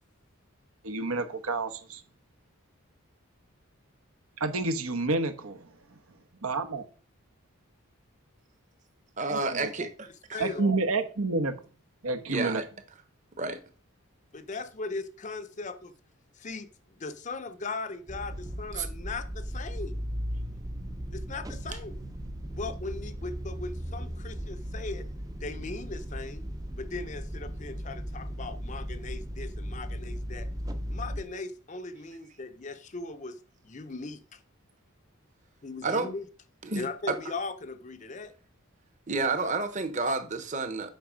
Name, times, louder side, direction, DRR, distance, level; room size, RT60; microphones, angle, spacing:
voice 1, 0.8-2.0 4.4-5.7 6.4-6.8 9.3-9.9 10.4-11.6 12.0-12.6, right 3 dB, 80° right, 1.1 m, -29 dB
voice 2, 9.2-10.4 12.3-12.6 13.4-13.6 18.8-18.9 35.8-36.1 36.6-37.2 39.1-40.9, right 3 dB, 35° right, 1.0 m, -30 dB
voice 3, 10.3-10.8 14.3-15.9 16.4-20.0 21.1-22.0 22.5-25.0 25.4-26.4 26.8-30.5 30.9-33.4 33.6-34.4 35.6-36.2 36.8-38.3, left 3 dB, 35° left, 0.6 m, -38 dB
sound 1, 18.1-31.2, equal, 15° right, 0.6 m, -37 dB
7.9 x 5.8 x 5.0 m
head